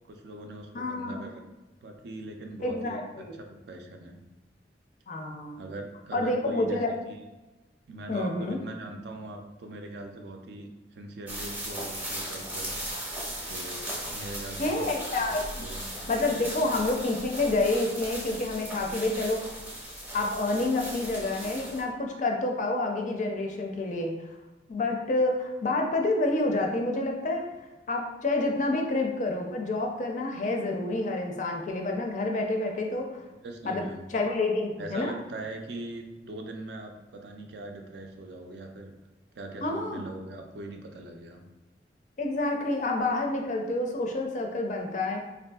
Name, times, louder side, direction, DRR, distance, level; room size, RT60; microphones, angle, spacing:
voice 1, 0.0-1.3 1.8-3.2 3.5-4.2 5.6-6.8 7.1-7.2 7.9-12.8 13.5-15.3 15.6-16.6 33.4-34.0 34.8-38.9 39.3-41.4, right 2 dB, 70° right, 3 dB, 0.4 m, -41 dB
voice 2, 0.7-1.2 2.6-3.4 5.1-5.6 6.1-6.9 8.1-8.6 14.6-15.6 16.1-19.4 20.1-24.1 24.7-27.4 27.9-33.2 33.6-35.1 39.6-40.0 42.2-45.2, left 2 dB, 45° left, 2 dB, 0.4 m, -28 dB
sound 1, 11.3-21.8, right 1 dB, 10° right, 0.5 m, -37 dB
3.5 x 2.5 x 2.3 m, 1.1 s
head